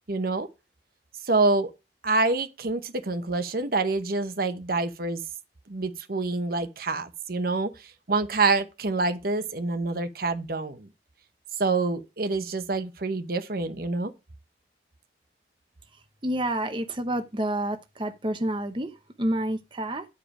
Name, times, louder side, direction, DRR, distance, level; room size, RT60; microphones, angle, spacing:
voice 1, 0.1-0.5 1.2-1.7 2.0-5.2 5.7-10.9 11.6-14.1, right 3 dB, 55° right, 0.9 m, -27 dB
voice 2, 16.2-20.1, right 1 dB, 25° right, 0.9 m, -29 dB
10.5 x 5.2 x 4.8 m
head